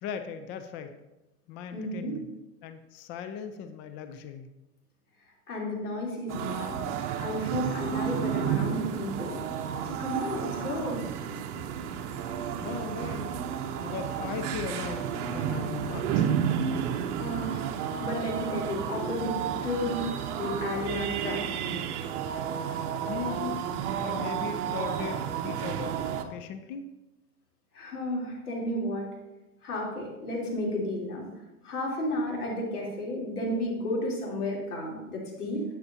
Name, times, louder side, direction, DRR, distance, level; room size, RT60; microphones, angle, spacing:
voice 1, 0.0-1.0 1.5-2.3 2.6-4.5 12.6-13.3 13.8-16.3 23.1-23.7 24.0-26.0 26.3-26.8, left 7 dB, 25° left, 8 dB, 0.5 m, -38 dB
voice 2, 1.7-2.2 5.5-9.4 9.8-11.0 17.2-17.7 18.0-19.4 19.6-20.1 20.3-21.6 27.7-29.1 29.6-31.3 31.6-35.7, left 1 dB, 90° left, -3 dB, 3.6 m, -32 dB
sound 1, 6.3-26.2, right 8 dB, 50° right, 1.0 m, -31 dB
11.0 x 8.4 x 2.8 m, 0.99 s
hypercardioid pair, 125°, 44 cm